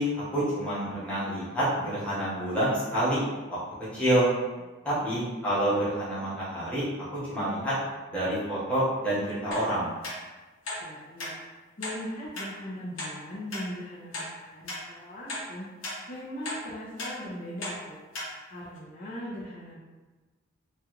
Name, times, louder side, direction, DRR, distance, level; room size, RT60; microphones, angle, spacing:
voice 1, 0.0-3.2 3.9-4.3 4.8-6.8 7.3-7.7 8.1-9.9, right 1 dB, 5° left, -11 dB, 1.2 m, -27 dB
sound 1, 9.5-9.7 10.0-10.2 10.6-10.8 11.2-11.3 11.8-12.0 12.3-12.5 13.0-13.1 13.5-13.6 14.1-14.3 14.7-14.8 15.3-15.4 15.8-16.0 16.4-16.6 17.0-17.1 17.6-17.8 18.1-18.3 18.8-18.9, left 1 dB, 75° left, 1.0 m, -35 dB
voice 2, 10.8-11.3 11.8-15.7 16.1-18.0 18.5-19.8, equal, 45° left, -9 dB, 0.7 m, -39 dB
3.1 x 2.4 x 3.0 m, 1.2 s
head